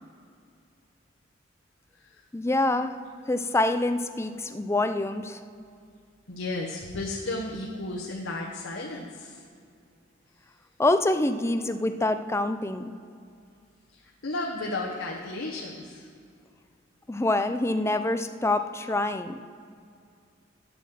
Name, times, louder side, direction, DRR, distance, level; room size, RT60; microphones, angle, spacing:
voice 1, 2.3-3.0 3.3-5.4 10.8-12.9 17.1-19.4, left 2 dB, 15° left, 9 dB, 0.5 m, -26 dB
voice 2, 6.3-9.5 13.9-16.1, left 2 dB, 75° left, -2 dB, 1.2 m, -34 dB
9.4 x 8.1 x 7.5 m, 2.3 s
head